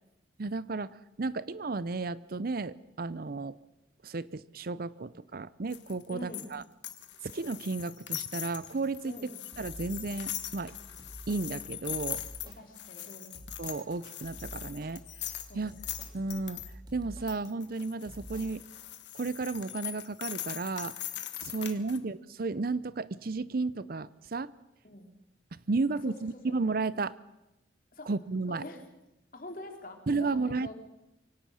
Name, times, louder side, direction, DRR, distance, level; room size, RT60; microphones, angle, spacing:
voice 1, 0.4-3.6 4.0-6.6 7.3-10.7 11.3-12.2 13.6-15.0 15.5-15.7 16.1-16.6 16.9-18.6 19.1-20.9 21.4-24.5 25.5-27.2 28.1-28.6 30.1-30.7, right 3 dB, 55° right, 18 dB, 0.6 m, -33 dB
sound 1, 5.7-16.7 17.3-22.0, left 13 dB, 70° left, 1.6 m, -41 dB
voice 2, 6.1-6.5 9.0-9.3 12.4-13.4 15.5-15.8 21.8-22.1 24.8-25.1 26.0-26.6 27.9-28.1 28.5-28.8 29.3-30.7, left 1 dB, 50° left, 4 dB, 3.3 m, -45 dB
sound 2, 9.5-18.7, equal, 25° right, 3.3 m, -49 dB
24.0 x 17.5 x 6.4 m, 0.93 s
head